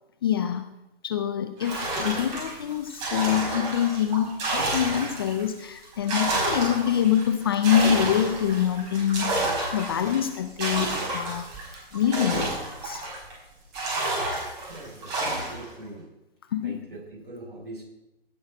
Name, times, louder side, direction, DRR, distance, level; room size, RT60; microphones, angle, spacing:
voice 1, 0.2-0.7 1.0-11.5 11.9-13.1 16.5-16.8, left 9 dB, 25° left, 9 dB, 0.5 m, -25 dB
sound 1, 1.6-5.4 5.8-13.3 13.7-15.7, right 2 dB, 30° right, 4.7 m, -30 dB
voice 2, 14.7-16.1 16.6-17.8, right 2 dB, 55° right, 0 dB, 5.4 m, -42 dB
16.5 x 6.3 x 6.1 m, 0.93 s
figure-of-eight pair, 135°, 30 cm